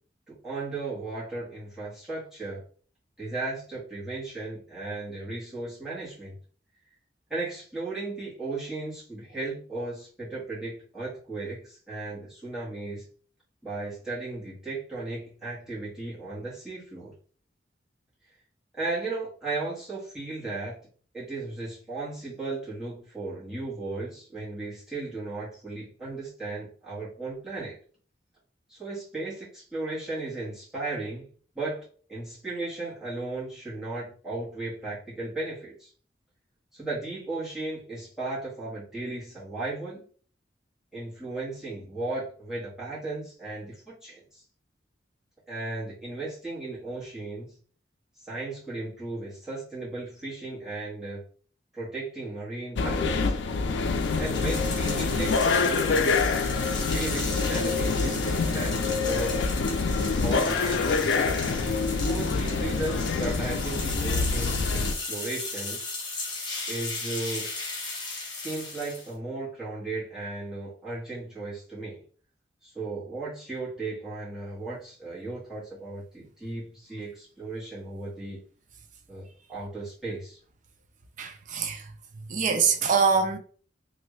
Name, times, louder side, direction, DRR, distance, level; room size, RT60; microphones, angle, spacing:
voice 1, 0.3-2.6 3.2-6.3 7.3-13.1 13.6-17.1 18.7-27.8 28.7-31.3 31.5-35.9 36.7-40.1 40.9-44.4 45.5-47.5 48.3-51.2 51.7-53.6 54.1-56.2 56.9-59.4 60.2-61.3 61.9-65.8 66.7-67.5 68.3-72.0 72.6-78.4 79.1-80.4, right 2 dB, 5° right, 1.5 m, -36 dB
sound 1, 52.8-64.9, left 4 dB, 80° left, 0.4 m, -26 dB
sound 2, 53.9-69.1, left 3 dB, 25° left, 1.1 m, -36 dB
voice 2, 81.2-83.4, right 5 dB, 45° right, 0.4 m, -25 dB
3.2 x 2.5 x 3.1 m
head